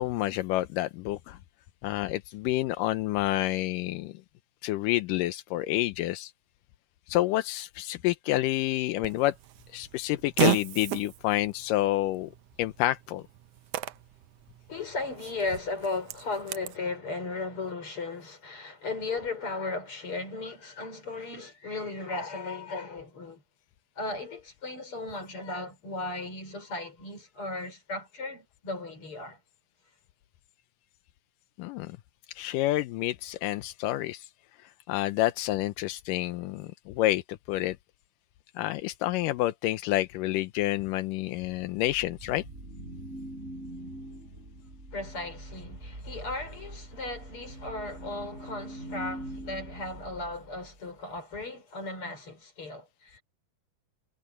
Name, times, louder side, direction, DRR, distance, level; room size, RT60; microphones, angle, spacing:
voice 1, 0.0-1.4 1.8-4.1 4.6-6.3 7.1-9.4 9.7-12.3 12.6-13.2 31.6-32.0 32.3-34.3 34.6-37.8 38.6-42.4, left 16 dB, 85° left, 2.4 m, -28 dB
Fart, 9.0-16.8, right 15 dB, 90° right, 1.4 m, -35 dB
voice 2, 14.7-23.4 24.0-29.4 44.9-53.2, left 3 dB, 40° left, 6.6 m, -36 dB
sound 1, 41.6-50.8, right 1 dB, 20° right, 7.3 m, -43 dB
omnidirectional pair, 3.7 m